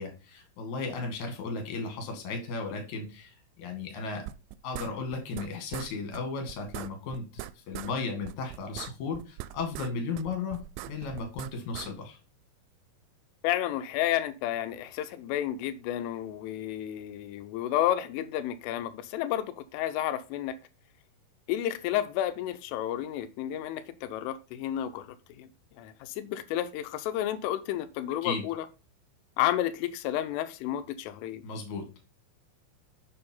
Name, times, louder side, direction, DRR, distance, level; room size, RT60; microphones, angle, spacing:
voice 1, 0.0-4.2 4.6-12.2 28.2-28.4 31.4-31.9, left 4 dB, 50° left, 2.8 m, -35 dB
sound 1, 4.3-5.5 5.7-5.9 6.1-6.2 6.5-7.9 8.3-9.9 10.2-11.9, right 15 dB, 85° right, 3.1 m, -40 dB
voice 2, 13.4-20.6 21.5-25.5 25.7-28.7 29.4-31.4, left 12 dB, 80° left, 3.3 m, -31 dB
7.4 x 6.8 x 5.5 m
omnidirectional pair, 5.7 m